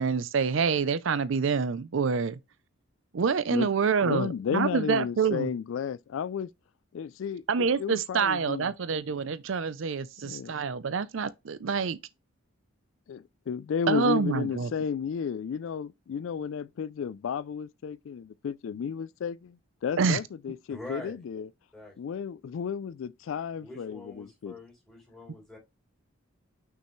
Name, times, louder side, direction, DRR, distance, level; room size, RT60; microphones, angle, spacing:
voice 1, 0.0-2.4 3.1-5.5 7.5-12.0 13.9-14.7 20.0-20.2, right 5 dB, 65° right, 0.5 m, -27 dB
voice 2, 4.0-6.5 6.9-8.7 10.2-10.7 13.1-21.5 22.0-24.5, left 7 dB, 70° left, 0.3 m, -33 dB
voice 3, 20.7-21.2 21.7-21.9 23.6-25.6, left 1 dB, ahead, 3.8 m, -44 dB
6.1 x 5.5 x 3.1 m
head